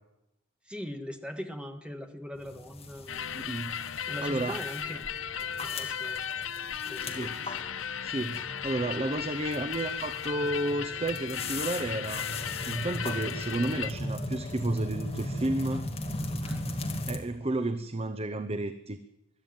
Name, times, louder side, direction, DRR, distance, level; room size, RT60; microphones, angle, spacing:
voice 1, 0.7-3.3 3.8-5.0 5.6-6.2 6.9-7.6 16.4-16.6, equal, 5° right, 5 dB, 1.8 m, -41 dB
sound 1, 2.3-17.2, left 1 dB, 30° left, 2.6 m, -38 dB
sound 2, 3.1-13.9, left 8 dB, 75° left, 0.7 m, -36 dB
voice 2, 3.3-4.6 7.0-7.4 8.0-12.3 12.6-15.9 16.3-16.5 17.1-19.0, right 2 dB, 30° right, 10 dB, 0.8 m, -32 dB
22.5 x 13.0 x 9.0 m, 0.91 s
head